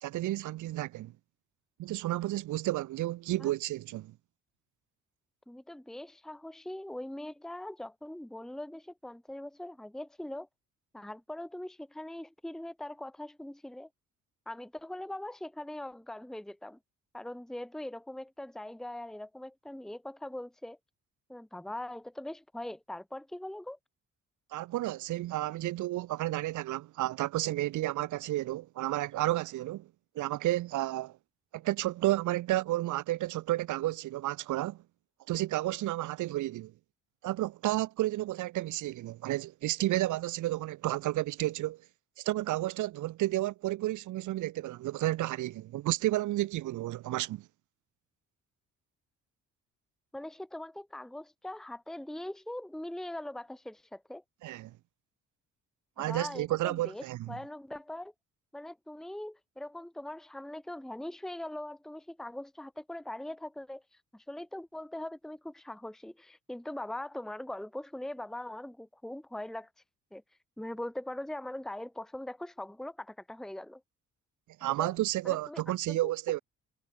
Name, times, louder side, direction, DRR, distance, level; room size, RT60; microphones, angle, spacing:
voice 1, 0.0-1.1 1.8-4.1 24.5-29.9 30.1-31.1 31.5-34.8 35.3-36.7 37.2-41.8 42.2-47.4 54.4-54.7 56.0-57.4 74.6-76.4, right 16 dB, 75° right, 1.1 m, -31 dB
voice 2, 5.5-10.5 10.9-13.9 14.5-16.8 17.1-20.8 21.3-23.8 50.1-54.2 56.0-58.1 58.5-63.8 64.1-69.7 70.1-70.2 70.6-73.8 74.8-75.0 75.2-75.6 75.9-76.1, left 1 dB, ahead, 1.3 m, -41 dB
cardioid pair, 165°, 30 cm